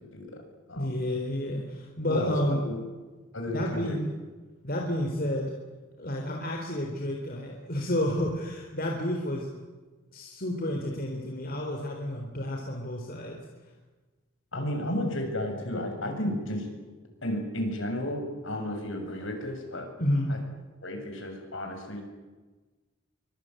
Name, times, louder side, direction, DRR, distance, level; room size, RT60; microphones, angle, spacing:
voice 1, 0.8-2.6 3.5-4.0 4.6-5.5 6.0-9.5 10.1-13.4 20.0-20.3, left 1 dB, 45° left, 1 dB, 4.0 m, -30 dB
voice 2, 3.3-4.0 14.5-16.7 17.2-19.9 20.3-20.4 20.8-22.0, left 1 dB, 65° left, 4 dB, 7.2 m, -32 dB
26.0 x 24.5 x 9.3 m, 1.3 s
head